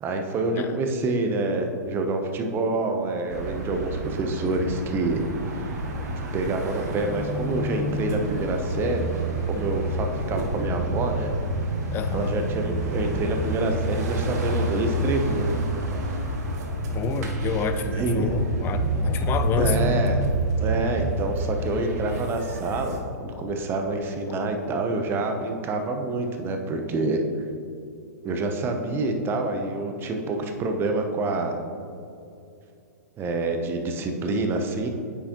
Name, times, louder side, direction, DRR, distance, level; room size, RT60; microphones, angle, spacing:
voice 1, 0.0-5.2 6.2-9.1 9.5-11.3 12.1-15.5 17.5-18.3 19.6-20.2 20.6-27.2 28.2-31.6 33.2-34.9, right 2 dB, 25° right, 4 dB, 0.7 m, -27 dB
sound 1, 3.3-23.0, right 1 dB, 65° right, 1.1 m, -28 dB
voice 2, 11.9-12.4 16.9-20.2, left 6 dB, 25° left, 9 dB, 0.4 m, -29 dB
sound 2, 18.3-18.4 19.0-19.1 19.9-20.0 20.7-20.8 21.6-21.7 22.4-22.5 23.3-23.4 24.3-24.4 25.3-25.4, left 5 dB, 40° left, 1.2 m, -42 dB
8.9 x 4.7 x 2.9 m, 2.5 s
hypercardioid pair, 130°, 9 cm